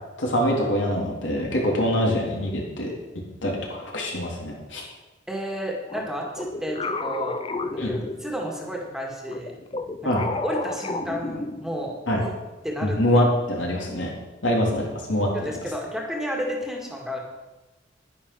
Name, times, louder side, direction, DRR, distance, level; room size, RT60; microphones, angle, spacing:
voice 1, 0.2-2.9 3.4-4.9 7.8-7.9 10.0-10.2 12.1-12.2 12.8-14.1 14.4-15.3, equal, 75° left, -2 dB, 3.5 m, -24 dB
voice 2, 5.3-7.4 7.7-9.5 10.0-10.2 10.4-12.3 12.6-13.0 15.3-17.2, equal, ahead, -1 dB, 2.0 m, -31 dB
sound 1, 5.9-8.7 9.2-12.0, left 3 dB, 30° left, 0.6 m, -32 dB
10.5 x 10.5 x 6.2 m, 1.1 s
head